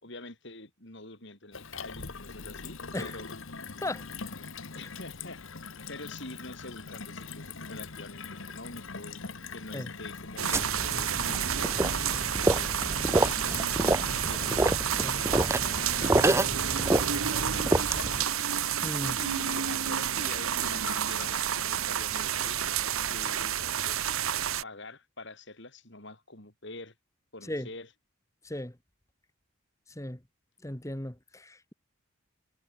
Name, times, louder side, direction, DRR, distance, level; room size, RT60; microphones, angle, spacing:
voice 1, 0.0-3.4 4.7-5.4 5.9-9.2 9.5-11.8 12.3-12.8 13.1-17.1 17.4-18.3 19.1-22.6 23.0-23.6 23.9-24.2 24.6-26.9 27.3-27.9, left 2 dB, 55° left, 5.8 m, -46 dB
Gurgling / Water tap faucet / Sink (filling or washing), 1.5-21.4, left 4 dB, 70° left, 1.7 m, -43 dB
sound 1, 10.4-24.6, right 9 dB, 90° right, 1.2 m, -30 dB
sound 2, 10.5-18.2, right 2 dB, 15° right, 0.5 m, -28 dB
voice 2, 18.8-19.2 27.4-27.7 28.4-28.8 29.9-30.2 30.6-31.7, left 1 dB, 15° left, 1.7 m, -36 dB
head